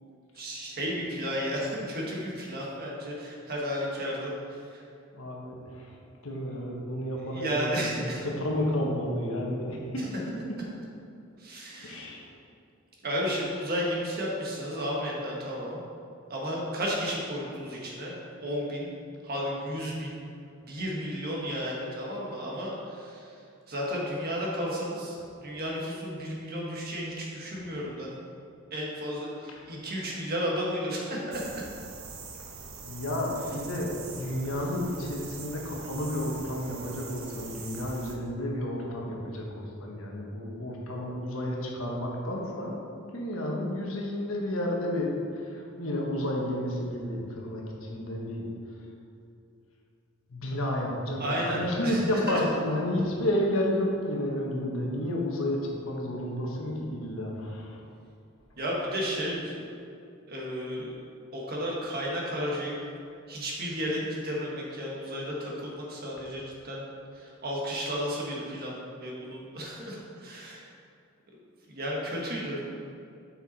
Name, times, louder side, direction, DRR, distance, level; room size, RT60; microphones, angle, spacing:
voice 1, 0.3-4.8 7.3-8.2 11.4-12.0 13.0-15.8 16.3-18.9 19.2-20.2 20.6-28.1 28.7-31.5 51.2-52.4 58.6-59.6 60.3-60.9 61.3-62.8 63.3-66.9 67.1-70.7 71.7-72.7, equal, 50° right, -3 dB, 1.5 m, -33 dB
voice 2, 5.1-10.1 11.8-12.3 27.5-27.7 29.5-29.7 32.8-42.7 43.1-48.8 50.3-57.8, left 1 dB, 80° left, -2 dB, 1.3 m, -31 dB
Outdoor Ambience - Cicadas, 31.3-38.1, right 4 dB, 90° right, 0.9 m, -43 dB
6.9 x 5.8 x 4.2 m, 2.6 s
head